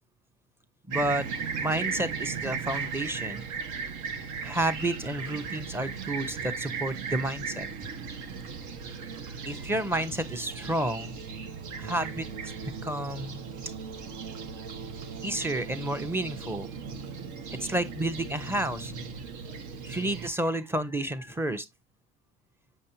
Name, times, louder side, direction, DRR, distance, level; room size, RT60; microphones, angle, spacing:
voice 1, 0.9-3.4 4.4-7.7 9.3-11.2 11.8-12.3 12.8-13.4 15.2-16.7 17.6-18.9 19.8-21.7, right 1 dB, 5° right, 0.9 m, -31 dB
Fixed-wing aircraft airplane, 0.9-20.3, right 5 dB, 65° right, 1.3 m, -37 dB
7.9 x 5.3 x 2.8 m
supercardioid pair, 80°, 33 cm